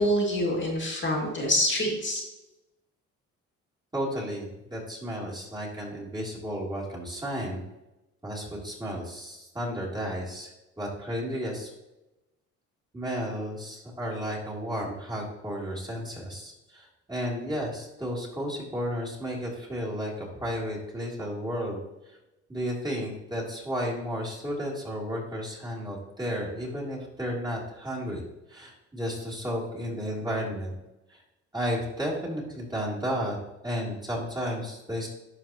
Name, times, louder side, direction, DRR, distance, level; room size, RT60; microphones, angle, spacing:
voice 1, 0.0-2.2, left 1 dB, 40° left, -2 dB, 2.2 m, -26 dB
voice 2, 3.9-7.6 8.2-11.7 12.9-21.8 22.5-28.2 28.5-30.7 31.5-33.4 33.6-35.1, equal, 15° right, -5 dB, 2.9 m, -33 dB
11.5 x 4.7 x 2.9 m, 0.97 s
cardioid pair, 90°, 30 cm